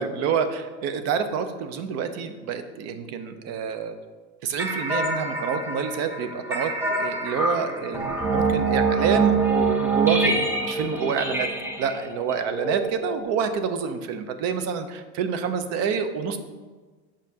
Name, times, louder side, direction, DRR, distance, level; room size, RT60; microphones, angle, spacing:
voice 1, 0.0-3.9 4.4-11.5 11.8-16.4, right 6 dB, 50° right, 9 dB, 0.6 m, -28 dB
sound 1, 4.6-13.5, right 3 dB, 5° right, 0.7 m, -25 dB
7.3 x 5.0 x 2.8 m, 1.4 s
supercardioid pair, 120°, 33 cm